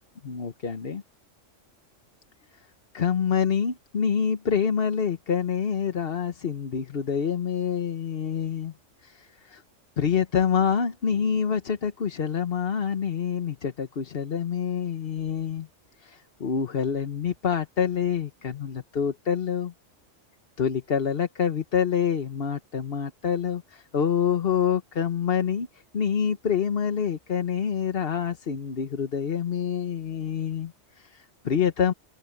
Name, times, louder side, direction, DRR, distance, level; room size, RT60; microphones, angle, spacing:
voice 1, 0.2-1.0 2.9-8.7 9.0-9.6 10.0-15.7 16.0-19.7 20.6-31.9, left 7 dB, 50° left, 1.3 m, -27 dB
open air
omnidirectional pair, 1.3 m